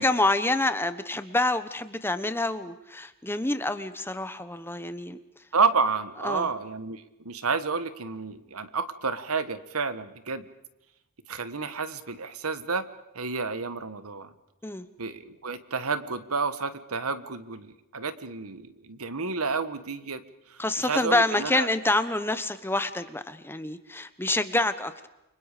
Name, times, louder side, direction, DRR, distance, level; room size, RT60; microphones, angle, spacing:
voice 1, 0.0-5.2 6.2-6.5 14.6-14.8 20.6-25.1, left 2 dB, 10° left, 11 dB, 1.2 m, -27 dB
voice 2, 5.5-10.4 11.3-12.9 13.1-14.3 15.0-20.2 20.5-21.7, right 4 dB, 80° right, 12 dB, 1.6 m, -30 dB
29.5 x 25.0 x 5.2 m, 0.93 s
head